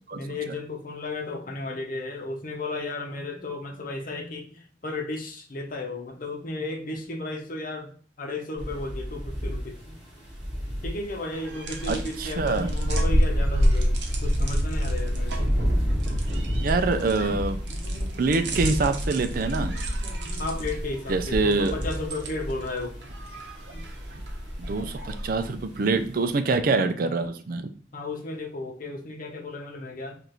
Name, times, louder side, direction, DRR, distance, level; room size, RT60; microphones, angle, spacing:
voice 1, 0.1-10.0 10.8-13.9 14.2-15.5 17.7-18.8 19.7-23.0 23.7-23.8 27.9-30.2, left 2 dB, 50° left, 2 dB, 0.8 m, -34 dB
sound 1, 8.6-26.3, equal, 5° right, 2.0 m, -33 dB
sound 2, 11.3-25.5, equal, 70° right, 0.8 m, -29 dB
voice 2, 11.9-12.7 16.6-17.6 18.2-19.7 21.1-21.8 24.6-27.7, right 3 dB, 50° right, 8 dB, 0.5 m, -25 dB
5.0 x 2.5 x 3.1 m, 0.43 s
head